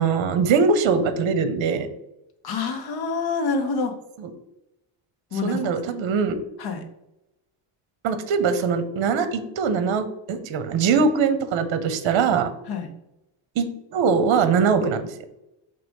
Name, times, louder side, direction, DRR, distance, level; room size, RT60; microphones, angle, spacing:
voice 1, 0.0-1.9 4.2-4.3 5.4-6.4 8.0-12.5 13.6-15.0, right 5 dB, 70° right, 10 dB, 0.9 m, -22 dB
voice 2, 2.4-3.9 5.3-5.6 6.6-6.8 12.7-12.9, left 4 dB, 50° left, 6 dB, 1.0 m, -26 dB
6.1 x 3.3 x 5.2 m, 0.89 s
cardioid pair, 145°, 49 cm